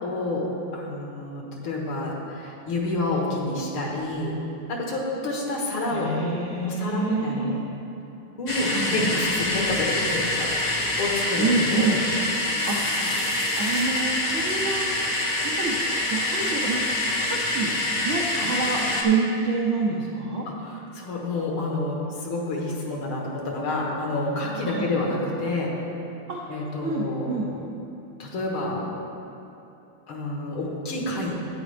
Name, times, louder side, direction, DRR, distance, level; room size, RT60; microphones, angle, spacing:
voice 1, 0.0-4.4 4.7-6.2 6.6-7.6 8.4-11.9 18.3-18.5 20.5-25.7 26.5-27.4 28.2-28.9 30.1-31.3, left 2 dB, 80° left, -2 dB, 2.2 m, -29 dB
voice 2, 5.9-7.6 8.6-9.0 11.4-12.0 12.7-13.0 13.6-14.8 15.4-15.7 16.1-16.9 17.2-17.7 18.0-20.5 24.6-24.9 26.3-26.4 26.8-27.6, right 3 dB, 75° right, -2 dB, 0.6 m, -27 dB
sound 1, 8.5-19.0, left 1 dB, 55° left, 0.4 m, -26 dB
11.0 x 9.0 x 3.3 m, 2.9 s
omnidirectional pair, 2.3 m